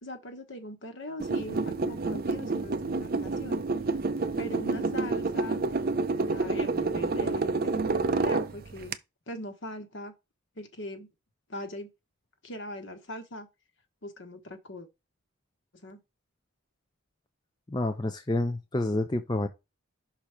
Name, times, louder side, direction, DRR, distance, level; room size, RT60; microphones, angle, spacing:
voice 1, 0.0-3.6 4.4-5.6 6.3-9.0 9.3-10.1 10.5-11.1 11.5-11.9 12.4-13.5 14.0-14.9 15.8-16.0, left 1 dB, 55° left, 1.3 m, -41 dB
sound 1, 1.2-8.9, right 3 dB, 40° right, 0.5 m, -29 dB
voice 2, 17.7-19.5, left 2 dB, 20° left, 0.5 m, -28 dB
6.0 x 4.2 x 4.9 m
head